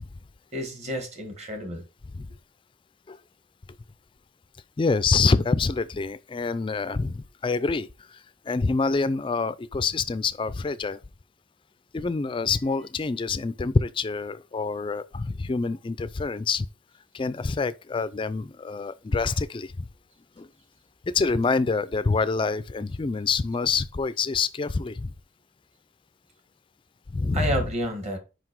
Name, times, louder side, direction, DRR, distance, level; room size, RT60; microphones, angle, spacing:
voice 1, 0.5-1.8 27.3-28.2, right 1 dB, 35° right, 1.6 m, -30 dB
voice 2, 4.8-11.0 11.9-16.7 17.1-19.7 20.4-20.5 21.1-25.1 27.1-27.6, left 4 dB, 25° left, 0.3 m, -26 dB
5.8 x 5.2 x 4.6 m
head